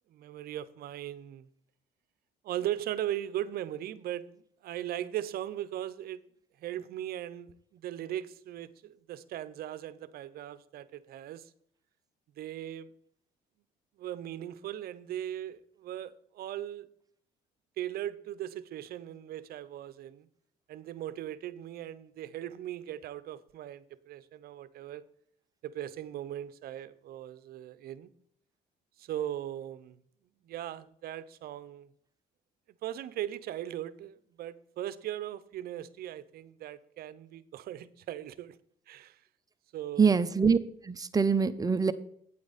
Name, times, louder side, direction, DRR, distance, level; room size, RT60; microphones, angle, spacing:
voice 1, 0.1-1.5 2.4-4.3 4.6-6.2 6.6-11.5 12.4-12.9 14.0-16.9 17.8-20.3 20.7-25.0 25.6-28.1 29.0-30.0 30.4-31.9 32.8-38.6 38.9-39.2 39.7-40.2, right 12 dB, 65° right, 0.7 m, -38 dB
voice 2, 40.0-40.6 40.8-41.9, right 5 dB, 20° right, 0.6 m, -24 dB
8.7 x 8.5 x 4.1 m
cardioid pair, 110°, 17 cm